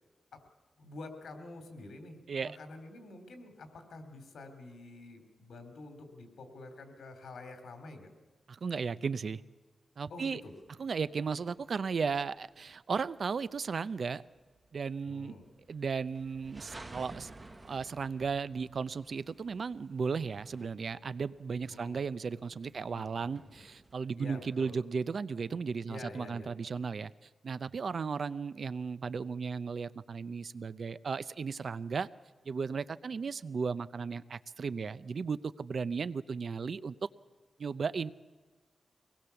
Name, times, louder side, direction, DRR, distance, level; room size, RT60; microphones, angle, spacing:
voice 1, 0.8-8.1 10.1-10.5 15.1-15.4 21.7-22.0 22.8-23.6 24.2-24.7 25.8-26.5, left 2 dB, 85° left, 7 dB, 3.3 m, -48 dB
voice 2, 8.5-9.4 10.0-10.4 10.8-14.2 14.7-15.4 15.7-17.3 17.6-27.1 27.4-32.1 32.5-36.9 37.6-38.1, right 5 dB, 55° right, 16 dB, 0.6 m, -35 dB
sound 1, 10.6-23.9, right 2 dB, 20° right, 1.4 m, -54 dB
24.0 x 19.5 x 7.0 m, 1.3 s
wide cardioid pair, 150°, 0 cm